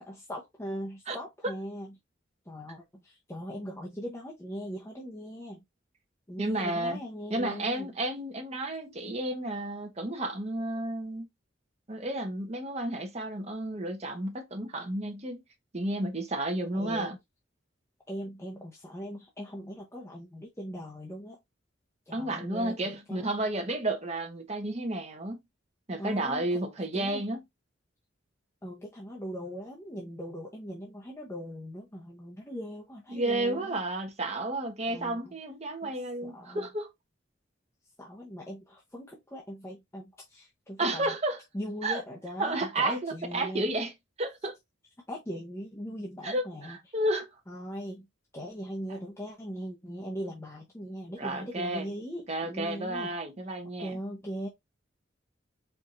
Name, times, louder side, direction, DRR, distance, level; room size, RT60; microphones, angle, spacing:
voice 1, 0.1-1.9 2.5-5.6 6.3-7.9 16.7-17.2 18.1-21.4 22.1-23.3 26.0-26.6 26.9-27.2 28.6-33.8 34.9-35.4 35.8-35.9 36.2-36.7 38.0-41.2 41.5-43.7 45.1-46.8 47.5-48.1 48.3-53.2 53.6-54.5, equal, 15° left, 0.9 m, -40 dB
voice 2, 6.4-7.0 7.3-11.3 11.9-15.4 15.7-17.2 22.1-25.4 25.9-27.4 33.1-36.9 40.8-41.4 41.8-42.0 42.4-43.9 44.2-44.6 46.2-47.3 51.2-51.9 52.3-54.0, right 1 dB, 35° right, 1.1 m, -32 dB
4.6 x 3.5 x 2.6 m
head